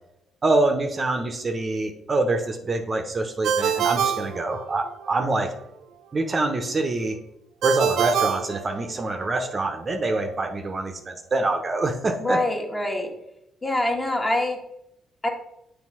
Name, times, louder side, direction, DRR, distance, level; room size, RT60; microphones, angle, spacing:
voice 1, 0.4-5.5 6.1-7.2 7.6-12.4, right 2 dB, 35° right, 5 dB, 0.8 m, -25 dB
Ringtone, 3.4-5.1 7.6-9.3, right 8 dB, 75° right, 0.5 m, -25 dB
voice 2, 12.2-13.1 13.6-14.6 15.2-15.3, left 1 dB, 20° left, 2 dB, 1.4 m, -24 dB
7.5 x 3.4 x 4.7 m, 0.81 s
cardioid pair, 90°, 0 cm